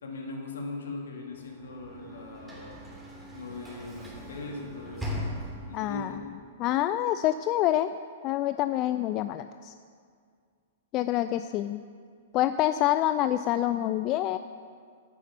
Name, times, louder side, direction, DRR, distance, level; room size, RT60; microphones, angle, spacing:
voice 1, 0.0-2.8 3.3-5.2 5.7-6.2, left 2 dB, 65° left, 0 dB, 2.7 m, -40 dB
Sliding door / Slam, 1.3-6.0, left 1 dB, 10° right, 2.9 m, -39 dB
voice 2, 5.7-6.1 6.6-7.9 8.2-9.7 10.9-11.8 12.3-14.4, left 13 dB, 35° left, 11 dB, 0.4 m, -26 dB
11.5 x 10.0 x 7.2 m, 2.1 s
figure-of-eight pair, 105°, 0 cm